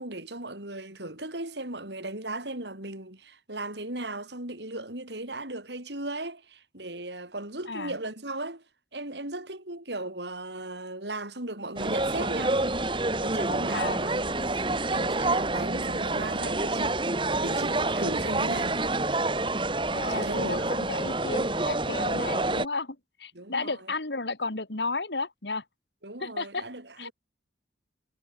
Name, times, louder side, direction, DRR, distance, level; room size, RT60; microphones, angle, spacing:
voice 1, 0.0-8.6 8.9-12.6 13.2-18.8 20.1-20.8 23.3-23.8 26.0-27.1, right 2 dB, 80° right, 7.8 m, -37 dB
voice 2, 7.7-8.0 13.7-14.0 19.9-25.6 26.2-26.6 27.0-27.1, left 3 dB, 80° left, 2.6 m, -33 dB
sound 1, 11.8-22.7, right 2 dB, 30° right, 2.5 m, -28 dB
head